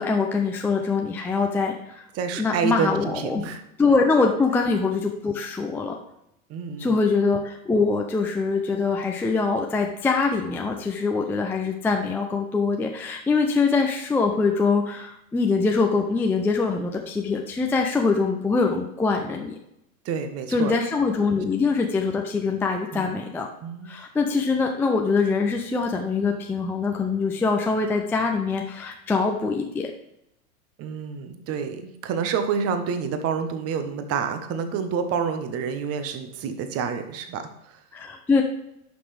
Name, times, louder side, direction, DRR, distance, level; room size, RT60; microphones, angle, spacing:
voice 1, 0.0-2.1 2.4-3.4 3.8-6.0 6.8-19.6 20.5-23.5 23.8-29.9 37.9-38.4, left 4 dB, 5° left, 2 dB, 0.4 m, -23 dB
voice 2, 2.1-3.6 6.5-7.0 20.0-20.7 22.9-23.2 23.6-23.9 30.8-37.8, right 6 dB, 35° right, 8 dB, 1.2 m, -28 dB
11.0 x 5.9 x 3.4 m, 0.81 s
hypercardioid pair, 115°, 43 cm